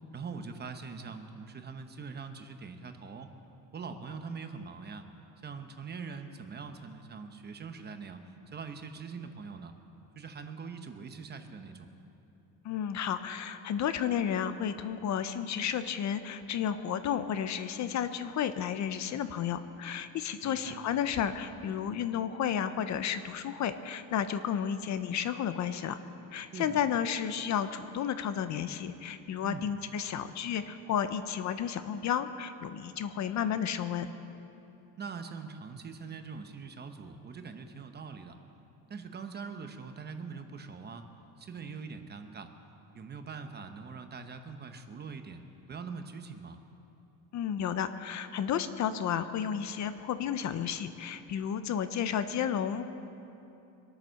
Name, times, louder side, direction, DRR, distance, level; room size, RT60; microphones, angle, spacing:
voice 1, 0.1-3.3 3.7-5.1 5.4-8.2 8.5-9.7 10.2-11.9 20.4-20.8 26.5-26.8 29.4-29.7 35.0-38.4 38.9-41.1 41.4-42.5 42.9-45.4 45.7-46.6, right 5 dB, 25° right, 7 dB, 0.9 m, -43 dB
voice 2, 12.6-26.0 26.3-34.1 47.3-52.8, left 8 dB, 45° left, 11 dB, 0.7 m, -32 dB
24.0 x 9.1 x 6.4 m, 2.9 s
cardioid pair, 165°, 39 cm